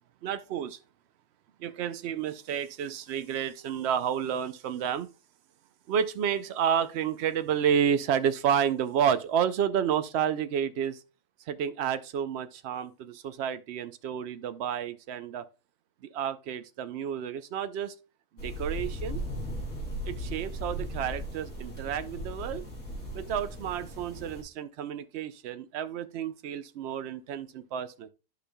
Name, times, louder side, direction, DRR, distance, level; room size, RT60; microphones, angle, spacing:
voice 1, 0.2-0.8 1.6-5.1 5.9-11.0 11.5-15.4 16.0-17.9 18.3-19.2 20.0-22.7 23.1-28.1, right 8 dB, 75° right, 0.6 m, -30 dB
sound 1, 18.4-24.4, equal, 50° left, 3.4 m, -37 dB
11.5 x 5.0 x 2.2 m
omnidirectional pair, 1.7 m